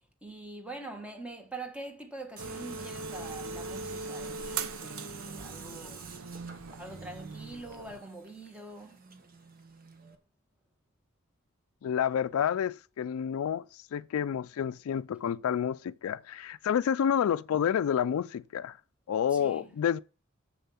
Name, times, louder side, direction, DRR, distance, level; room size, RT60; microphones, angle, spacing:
voice 1, 0.2-6.1 6.8-9.0 19.3-19.7, right 2 dB, 5° right, 1.5 m, -44 dB
Tools, 2.4-10.2, right 6 dB, 40° right, 1.3 m, -50 dB
sound 1, 2.4-8.0, right 4 dB, 85° right, 0.8 m, -40 dB
voice 2, 11.8-18.8 19.1-20.0, left 8 dB, 80° left, 0.3 m, -29 dB
7.6 x 6.9 x 5.6 m
head